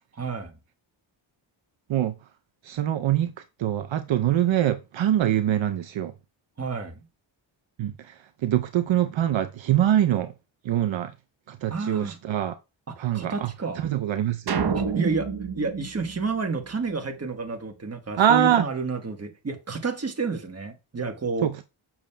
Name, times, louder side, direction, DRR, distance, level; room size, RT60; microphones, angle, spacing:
voice 1, 0.2-0.5 6.6-7.0 11.7-12.2 12.9-13.8 14.7-21.5, right 4 dB, 30° right, 1.3 m, -30 dB
voice 2, 2.6-3.3 3.6-6.1 7.8-10.3 10.6-11.1 11.5-12.5 13.0-13.5 13.8-14.6 18.2-18.7 21.4-21.6, right 11 dB, 70° right, 0.6 m, -24 dB
sound 1, 14.5-16.9, right 6 dB, 55° right, 1.0 m, -29 dB
7.2 x 6.1 x 2.2 m
cardioid pair, 85°, 48 cm